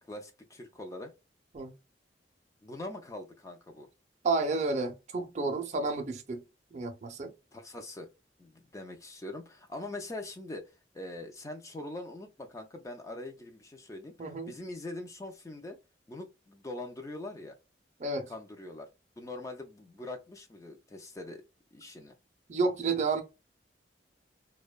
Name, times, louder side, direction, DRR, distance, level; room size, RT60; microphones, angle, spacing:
voice 1, 0.0-1.1 2.6-3.9 7.5-8.1 8.4-15.8 16.1-17.6 18.3-18.9 19.2-21.4 21.7-22.1, left 2 dB, 20° left, 0.3 m, -43 dB
voice 2, 4.2-6.4 6.7-7.3 14.2-14.5 18.0-18.3 22.5-23.2, right 3 dB, 40° right, 0.5 m, -30 dB
2.5 x 2.2 x 2.2 m
head